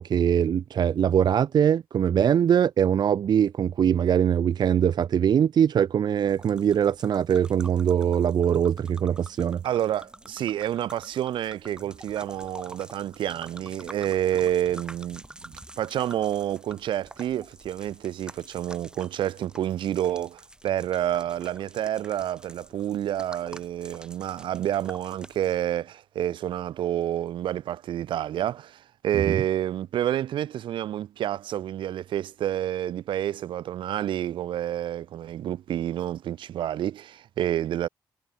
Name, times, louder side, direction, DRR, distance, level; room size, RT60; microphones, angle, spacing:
voice 1, 0.0-9.6 29.1-29.4, right 8 dB, 60° right, 1.0 m, -22 dB
sound 1, 6.3-25.6, right 1 dB, 10° right, 6.7 m, -47 dB
voice 2, 9.6-37.9, right 11 dB, 85° right, 2.6 m, -29 dB
cardioid pair, 105°, 8 cm